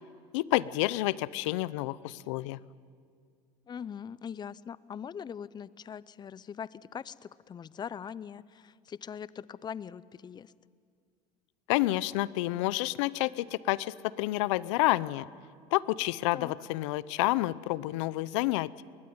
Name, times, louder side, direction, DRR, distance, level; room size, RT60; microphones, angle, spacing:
voice 1, 0.3-2.6 11.7-15.3 15.7-18.8, left 18 dB, 75° left, 19 dB, 0.7 m, -29 dB
voice 2, 3.7-10.5 16.3-16.5, left 7 dB, 25° left, 19 dB, 0.7 m, -41 dB
21.5 x 18.5 x 9.6 m, 2.2 s
supercardioid pair, 95°, 15 cm